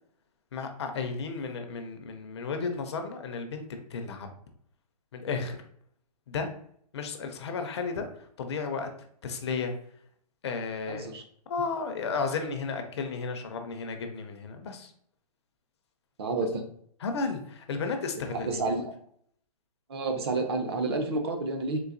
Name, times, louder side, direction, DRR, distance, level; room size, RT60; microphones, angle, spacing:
voice 1, 0.5-4.3 5.1-5.6 6.3-6.5 6.9-8.1 8.4-8.9 9.2-9.7 10.4-11.1 11.5-14.9 17.0-18.8, left 4 dB, 45° left, 6 dB, 0.4 m, -33 dB
voice 2, 10.9-11.2 16.2-16.6 18.3-18.9 19.9-21.8, right 3 dB, 40° right, 4 dB, 0.5 m, -30 dB
3.8 x 2.5 x 2.5 m, 0.65 s
hypercardioid pair, 165°, 20 cm